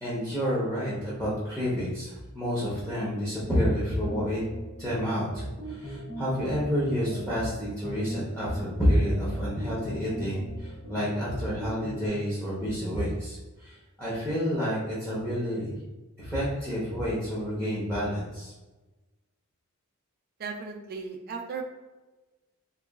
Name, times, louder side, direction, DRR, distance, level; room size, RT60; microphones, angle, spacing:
voice 1, 0.0-4.4 4.8-15.8 16.2-18.5, equal, 5° left, -9 dB, 0.7 m, -29 dB
sound 1, 4.1-12.1, equal, 45° left, 0.8 m, -38 dB
voice 2, 20.4-21.6, right 5 dB, 45° right, 2 dB, 0.4 m, -36 dB
3.8 x 2.3 x 2.3 m, 1.2 s
head